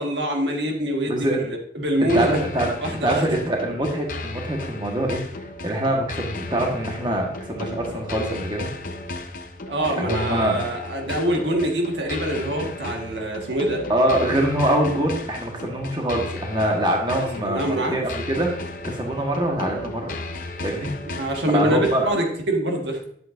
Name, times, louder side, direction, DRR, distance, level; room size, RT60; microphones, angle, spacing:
voice 1, 0.0-2.3 2.8-3.4 9.7-13.9 17.4-18.0 21.1-23.0, right 1 dB, 70° right, 2 dB, 1.5 m, -24 dB
voice 2, 1.1-1.4 2.0-2.7 3.0-5.2 5.6-8.7 10.0-10.7 13.9-20.1 20.6-20.9 21.5-22.1, right 1 dB, 25° right, 0 dB, 1.3 m, -24 dB
sound 1, 2.1-22.1, left 2 dB, 45° left, 0.8 m, -35 dB
11.0 x 7.9 x 2.5 m, 0.64 s
head